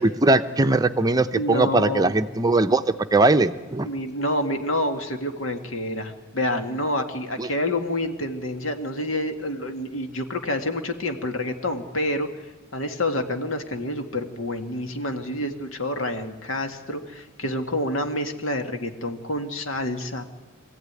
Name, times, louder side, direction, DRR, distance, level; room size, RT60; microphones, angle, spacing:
voice 1, 0.0-3.9 7.4-7.5, right 2 dB, 20° right, 9 dB, 0.7 m, -20 dB
voice 2, 1.3-2.1 3.8-12.3 12.7-20.2, left 1 dB, 80° left, 6 dB, 2.1 m, -28 dB
24.5 x 15.0 x 9.6 m, 1.2 s
head